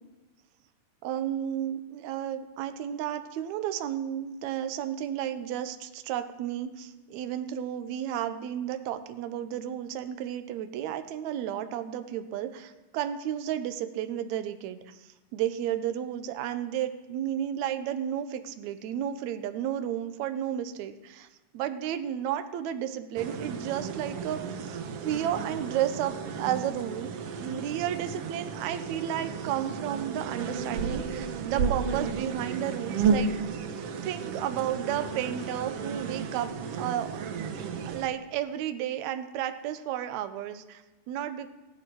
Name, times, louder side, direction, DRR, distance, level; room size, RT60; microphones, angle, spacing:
voice 1, 1.0-21.3 21.5-27.1 27.4-33.6 34.0-37.2 37.9-41.5, right 10 dB, 75° right, 9 dB, 1.8 m, -32 dB
sound 1, 23.2-38.1, right 5 dB, 90° right, 1.3 m, -33 dB
16.0 x 10.5 x 4.7 m, 1.1 s
omnidirectional pair, 3.9 m